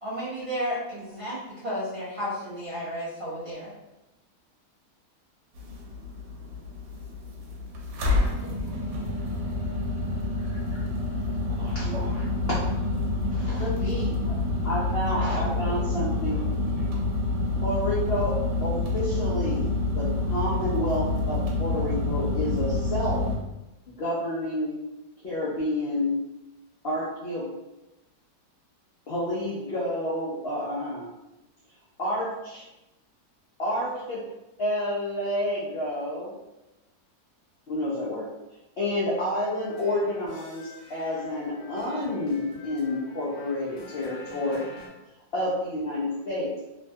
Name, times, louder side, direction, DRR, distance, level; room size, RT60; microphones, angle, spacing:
voice 1, 0.0-3.7 11.8-12.0 13.6-14.1, equal, 30° right, -11 dB, 0.6 m, -33 dB
sound 1, 5.6-23.4, left 2 dB, 90° right, 1.2 m, -28 dB
voice 2, 10.4-10.8 11.6-11.9 13.3-13.7 14.2-14.3 14.6-16.4 17.6-19.7 19.9-23.2 24.0-24.8 25.2-26.1 26.8-27.5 29.1-31.1 32.0-32.6 33.6-34.2 34.6-36.3 37.7-38.3 38.8-44.7 45.3-46.5, left 1 dB, 85° left, -7 dB, 0.5 m, -29 dB
voice 3, 11.3-12.2 12.5-13.0 15.3-16.9, right 1 dB, 75° right, -5 dB, 1.2 m, -44 dB
sound 2, 39.4-44.9, left 2 dB, 60° left, 1.2 m, -47 dB
3.1 x 2.2 x 2.6 m, 0.98 s
omnidirectional pair, 1.8 m